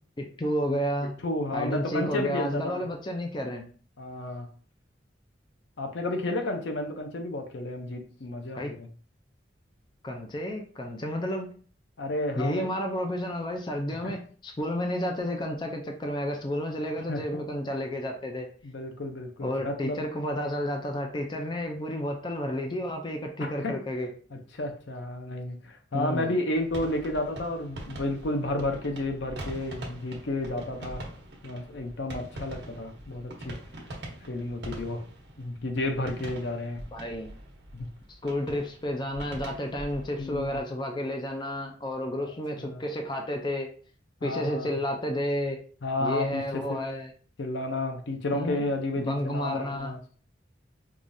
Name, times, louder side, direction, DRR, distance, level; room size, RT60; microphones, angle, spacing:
voice 1, 0.2-1.1 1.5-3.6 8.5-8.7 10.0-11.5 12.4-18.5 19.4-24.1 25.9-26.3 36.9-37.3 38.2-43.7 44.2-45.6 46.0-47.1 48.3-48.7 49.0-49.9, equal, 25° left, 3 dB, 0.4 m, -31 dB
voice 2, 0.7-2.9 4.0-4.5 5.8-8.9 12.0-12.7 14.0-14.2 17.0-17.4 18.6-20.0 23.4-23.8 24.3-31.1 31.4-33.6 34.3-35.0 35.4-36.8 37.7-37.9 40.2-40.6 42.6-42.8 44.2-44.8 45.8-46.9 47.4-50.0, left 2 dB, 70° left, 5 dB, 0.6 m, -32 dB
sound 1, 26.5-40.6, right 1 dB, 65° right, 0.9 m, -43 dB
4.7 x 2.4 x 2.6 m, 0.43 s
head